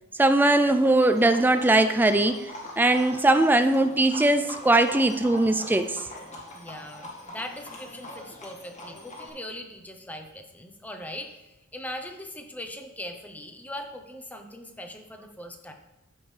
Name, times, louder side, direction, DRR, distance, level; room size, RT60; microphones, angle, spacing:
voice 1, 0.2-2.5 2.8-6.0, right 2 dB, 10° right, 9 dB, 0.3 m, -20 dB
Livestock farm animals working animals, 0.7-9.3, left 1 dB, 35° left, 1.7 m, -42 dB
voice 2, 6.5-15.7, left 1 dB, 5° left, 5 dB, 0.8 m, -40 dB
14.0 x 5.3 x 3.3 m, 1.0 s
head